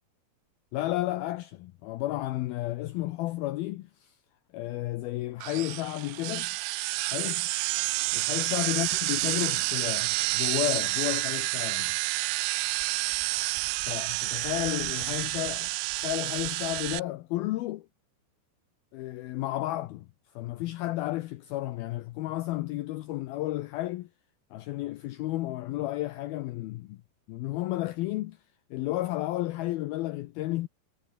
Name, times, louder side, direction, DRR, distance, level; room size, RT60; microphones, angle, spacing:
voice 1, 0.7-4.1 4.5-6.6 7.1-7.5 8.1-12.0 13.9-15.7 16.0-17.9 18.9-20.1 20.4-24.1 24.5-27.0 27.3-28.4 28.7-30.7, left 16 dB, 80° left, 2.2 m, -32 dB
sound 1, 5.4-17.0, right 25 dB, 85° right, 2.8 m, -29 dB
omnidirectional pair, 5.2 m